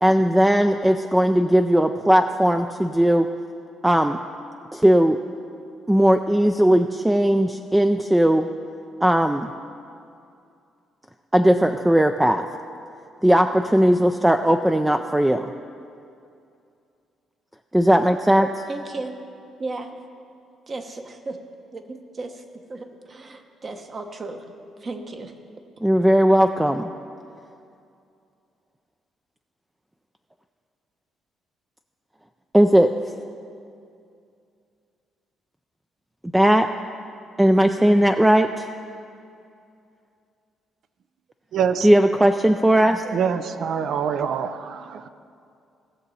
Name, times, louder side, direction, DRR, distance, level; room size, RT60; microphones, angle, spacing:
voice 1, 0.0-3.3 3.8-4.2 4.7-5.2 5.9-8.5 9.0-9.5 11.3-12.5 13.2-15.5 17.7-18.5 25.8-26.9 32.5-32.9 36.3-36.7 37.4-38.7 41.8-43.0, equal, 10° right, 7 dB, 0.4 m, -18 dB
voice 2, 18.7-19.2 19.6-20.0 20.7-21.4 21.7-24.5 24.8-25.3, right 3 dB, 35° right, 6 dB, 1.0 m, -35 dB
voice 3, 41.5-41.9 43.0-45.1, right 7 dB, 65° right, 12 dB, 0.5 m, -25 dB
17.5 x 6.7 x 4.2 m, 2.5 s
cardioid pair, 95°, 0 cm